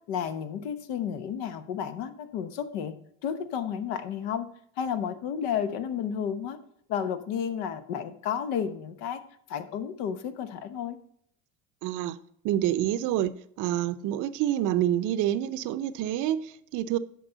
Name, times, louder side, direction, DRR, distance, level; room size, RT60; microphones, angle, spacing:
voice 1, 0.1-3.0 3.2-4.5 4.8-6.6 6.9-9.2 9.5-11.0, left 8 dB, 70° left, 1.0 m, -32 dB
voice 2, 11.8-12.2 12.4-13.3 13.6-17.0, right 12 dB, 55° right, 0.6 m, -27 dB
9.3 x 6.0 x 3.9 m
supercardioid pair, 90°, 36 cm